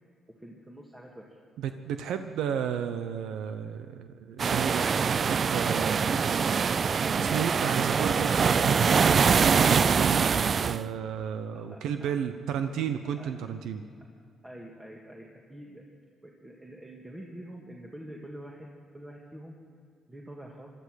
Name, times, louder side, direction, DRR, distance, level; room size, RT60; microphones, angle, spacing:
voice 1, 0.3-1.4 11.7-12.2 13.2-13.3 14.4-15.9 16.2-19.6 20.1-20.7, right 1 dB, 15° right, -1 dB, 1.9 m, -46 dB
voice 2, 1.6-6.4 7.2-13.8, right 8 dB, 85° right, 8 dB, 0.8 m, -33 dB
sound 1, 4.4-10.8, right 6 dB, 45° right, 0.4 m, -24 dB
18.5 x 12.5 x 6.4 m, 2.3 s
cardioid pair, 90°, 0 cm